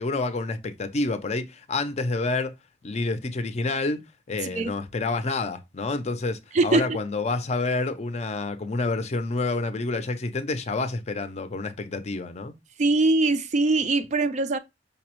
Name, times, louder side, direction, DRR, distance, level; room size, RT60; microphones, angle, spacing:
voice 1, 0.0-2.5 2.8-4.0 4.3-12.5, left 3 dB, 40° left, 0.5 m, -28 dB
voice 2, 6.5-6.9 12.8-14.6, right 3 dB, 40° right, 0.4 m, -22 dB
5.2 x 2.0 x 2.9 m
head